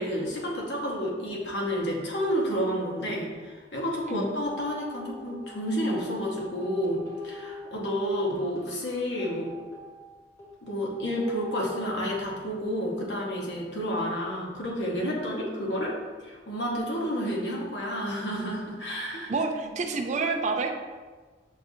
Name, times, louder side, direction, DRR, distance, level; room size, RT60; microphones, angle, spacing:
voice 1, 0.0-9.5 10.6-15.9 16.2-19.3, equal, 65° left, -3 dB, 1.0 m, -30 dB
sound 1, 4.1-12.1 14.0-14.1, left 2 dB, 15° left, 1.0 m, -44 dB
voice 2, 19.3-20.8, right 4 dB, 40° right, 4 dB, 0.4 m, -28 dB
6.4 x 2.4 x 2.6 m, 1.4 s
head